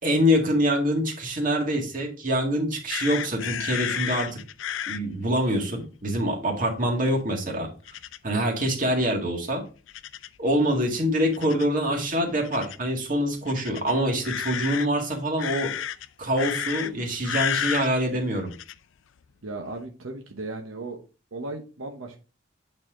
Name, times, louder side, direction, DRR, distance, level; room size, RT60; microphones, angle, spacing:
voice 1, 0.0-4.4 4.9-7.7 8.2-9.6 10.4-15.7 16.2-18.5, equal, 40° right, 1 dB, 1.9 m, -25 dB
sound 1, 2.9-5.0 7.9-8.2 9.9-10.4 11.3-11.7 12.4-12.8 13.5-14.9 15.4-16.1 16.4-16.9 17.2-17.9 18.5-18.7, left 10 dB, 70° left, 0.4 m, -31 dB
voice 2, 19.4-21.0 21.3-22.2, right 2 dB, 90° right, 2 dB, 1.0 m, -36 dB
8.7 x 4.2 x 3.7 m, 0.33 s
head